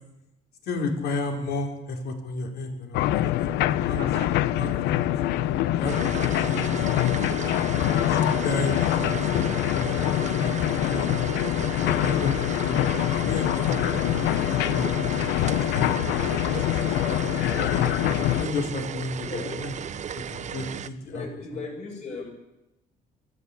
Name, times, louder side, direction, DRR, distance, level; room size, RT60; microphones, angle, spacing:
voice 1, 0.7-4.0 4.6-4.7 5.8-7.3 7.9-11.2 11.8-15.1 15.7-16.8 17.2-17.9 18.4-19.7 20.3-21.3, left 3 dB, 75° left, 3 dB, 4.5 m, -33 dB
sound 1, 2.9-18.5, left 13 dB, 90° left, 0.8 m, -25 dB
Chuckle chortle, 3.9-4.5 6.1-6.7 9.0-9.4, right 12 dB, 70° right, 1.2 m, -41 dB
sound 2, 5.9-20.9, right 8 dB, 45° right, 1.0 m, -35 dB
voice 2, 19.2-19.6 21.0-22.3, left 3 dB, 45° left, 1 dB, 6.5 m, -36 dB
24.5 x 12.5 x 8.5 m, 0.95 s
cardioid pair, 110°, 17 cm